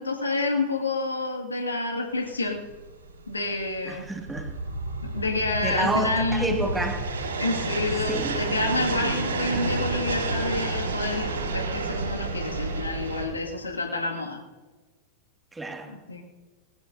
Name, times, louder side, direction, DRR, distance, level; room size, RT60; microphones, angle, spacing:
voice 1, 0.0-2.6 3.3-4.1 5.0-6.6 7.4-14.4 15.9-16.2, left 2 dB, 80° left, 1 dB, 2.1 m, -29 dB
sound 1, 2.3-13.2, right 3 dB, 70° right, 4.6 m, -31 dB
voice 2, 3.9-4.5 5.6-7.0 8.1-8.4 15.5-15.9, right 2 dB, 10° right, 3 dB, 2.1 m, -29 dB
sound 2, 4.2-7.9, right 1 dB, 90° right, 3.0 m, -33 dB
20.0 x 19.5 x 2.7 m, 1.4 s
figure-of-eight pair, 90°, 0 cm